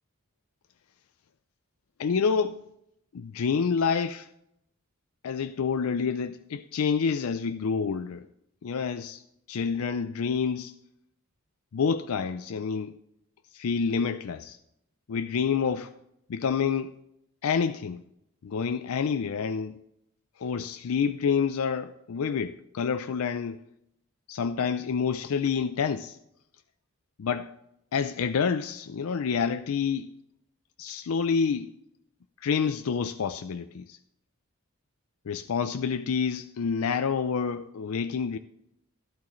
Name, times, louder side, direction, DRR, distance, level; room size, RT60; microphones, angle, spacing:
voice 1, 2.0-2.6 3.1-4.3 5.2-8.3 8.6-9.2 9.5-10.7 11.7-13.0 13.5-14.6 15.1-15.9 16.3-16.9 17.4-18.0 18.4-19.8 20.4-23.6 24.3-26.2 27.2-27.5 27.9-30.1 30.8-31.7 32.4-34.0 35.3-38.4, left 6 dB, 75° left, 0.4 m, -28 dB
12.5 x 12.0 x 3.1 m
head